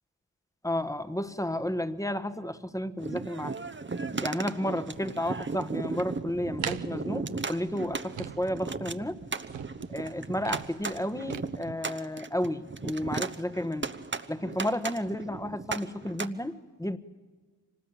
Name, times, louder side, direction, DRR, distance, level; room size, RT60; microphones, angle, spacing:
voice 1, 0.6-3.6 4.2-9.2 9.9-13.9 14.3-17.0, left 1 dB, 5° left, 12 dB, 1.3 m, -32 dB
sound 1, 3.0-16.3, right 4 dB, 25° right, 1.0 m, -36 dB
sound 2, 4.8-11.4, right 10 dB, 75° right, 0.9 m, -43 dB
25.0 x 19.5 x 8.9 m, 1.5 s
cardioid pair, 45°, 45 cm